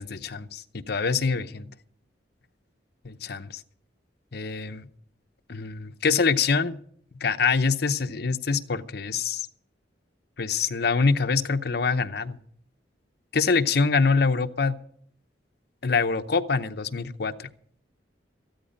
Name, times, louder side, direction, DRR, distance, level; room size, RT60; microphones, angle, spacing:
voice 1, 0.0-1.7 3.1-3.6 4.3-4.9 5.5-6.8 7.2-9.5 10.4-12.4 13.3-14.7 15.8-17.5, left 4 dB, 60° left, 0.7 m, -25 dB
14.0 x 13.0 x 5.2 m
head